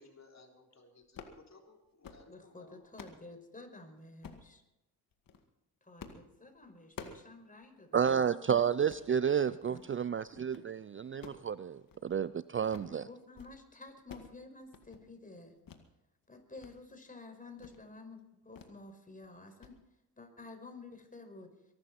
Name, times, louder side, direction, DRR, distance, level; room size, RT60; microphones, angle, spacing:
voice 1, 0.0-2.9, left 3 dB, 45° left, 2 dB, 3.8 m, -59 dB
sound 1, 1.0-1.4 1.8-2.3 2.7-3.2 4.2-4.5 5.1-5.4 6.0-6.3 6.6-7.3 7.6-7.7 8.0-8.2 8.7-9.1 9.6-9.9 10.2-10.7 11.1-12.3 12.6-13.0 13.2-13.6 13.8-14.4 14.6-15.0 15.7-15.8 16.2-16.7 17.1-17.2 17.6-17.8 18.6-18.8 19.1-19.3 19.6-19.8, left 6 dB, 60° left, 2.1 m, -51 dB
voice 2, 2.3-4.6 5.8-8.1 9.5-9.8 12.8-15.6 16.3-19.8 20.2-21.5, left 3 dB, 20° left, 4 dB, 5.2 m, -51 dB
voice 3, 7.9-13.0, right 7 dB, 35° right, 16 dB, 0.5 m, -31 dB
23.0 x 12.5 x 4.3 m, 0.92 s
supercardioid pair, 55°, 38 cm